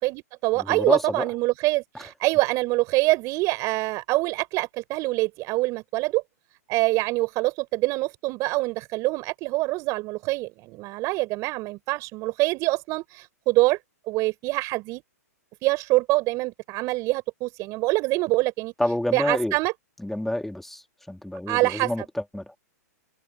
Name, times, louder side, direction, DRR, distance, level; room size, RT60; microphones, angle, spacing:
voice 1, 0.0-6.2 6.7-13.8 14.1-15.0 15.6-18.7 19.1-19.7 21.5-21.9, right 21 dB, 35° right, 4.4 m, -25 dB
voice 2, 0.6-1.2 18.8-19.5 20.0-22.5, left 1 dB, 5° left, 2.4 m, -28 dB
open air
hypercardioid pair, 115°, 9 cm